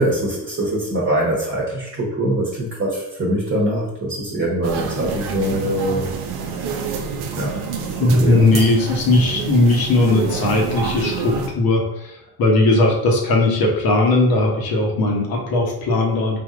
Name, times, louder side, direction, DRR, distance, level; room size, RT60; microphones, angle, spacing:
voice 1, 0.0-6.1 7.4-7.6 8.0-8.7, right 1 dB, 25° right, -4 dB, 1.0 m, -23 dB
sound 1, 4.6-11.5, right 5 dB, 60° right, 0.6 m, -27 dB
voice 2, 8.0-16.4, left 2 dB, 55° left, -1 dB, 1.0 m, -18 dB
3.4 x 2.6 x 2.5 m, 0.81 s
hypercardioid pair, 55°, 43 cm